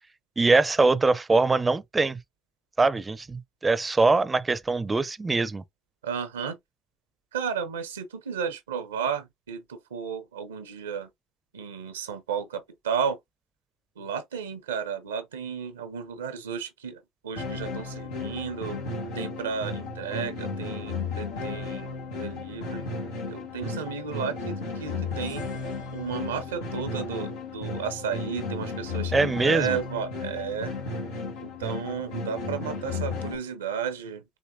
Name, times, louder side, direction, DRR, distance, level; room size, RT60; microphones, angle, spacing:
voice 1, 0.4-2.2 2.8-5.6 29.1-29.8, right 3 dB, 25° right, 0.6 m, -23 dB
voice 2, 6.0-6.6 7.3-11.1 11.5-13.2 14.0-18.8 19.1-22.9 23.3-25.4 25.9-30.7 31.4-34.2, right 6 dB, 85° right, 0.9 m, -33 dB
sound 1, 17.4-33.4, left 3 dB, 85° left, 1.5 m, -34 dB
6.2 x 2.9 x 2.7 m
hypercardioid pair, 55°, 0 cm